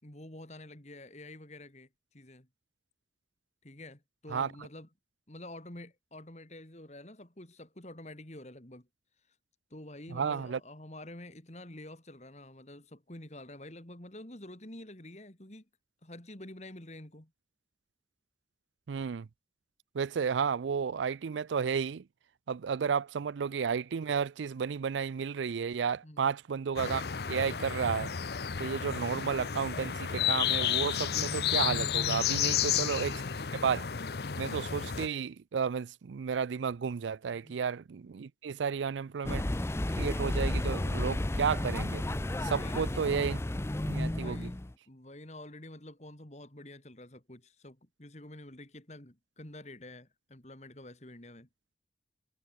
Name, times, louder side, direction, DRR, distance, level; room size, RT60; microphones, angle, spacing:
voice 1, 0.0-2.5 3.6-4.9 5.3-8.9 9.3-9.4 9.7-15.7 16.0-17.3 26.0-26.2 37.4-37.6 42.4-42.9 44.0-44.6 44.9-51.5, left 1 dB, 40° left, 2.8 m, -48 dB
voice 2, 10.1-10.6 18.9-19.3 19.9-22.0 22.5-28.1 28.6-33.2 33.6-33.9 34.4-39.5 39.9-42.1 42.4-43.4 43.9-44.5, right 6 dB, 90° right, 0.4 m, -32 dB
sound 1, 26.8-35.1, left 9 dB, 60° left, 0.7 m, -32 dB
sound 2, 28.2-34.9, equal, 20° right, 5.5 m, -60 dB
sound 3, 39.2-44.7, left 1 dB, 15° left, 0.5 m, -32 dB
head